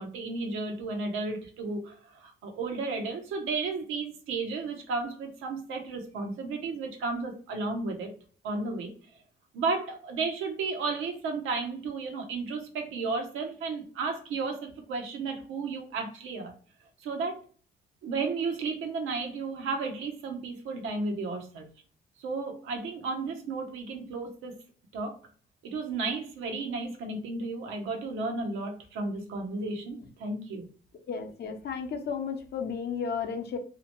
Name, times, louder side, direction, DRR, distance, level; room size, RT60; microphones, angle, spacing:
voice 1, 0.0-8.1 8.4-8.9 9.5-16.5 17.0-17.4 18.0-21.7 22.2-24.6 24.9-25.2 25.6-30.7, right 3 dB, 85° right, 3 dB, 0.8 m, -33 dB
voice 2, 30.9-33.6, left 6 dB, 55° left, 5 dB, 0.6 m, -33 dB
2.8 x 2.1 x 2.9 m, 0.41 s
cardioid pair, 90°, 20 cm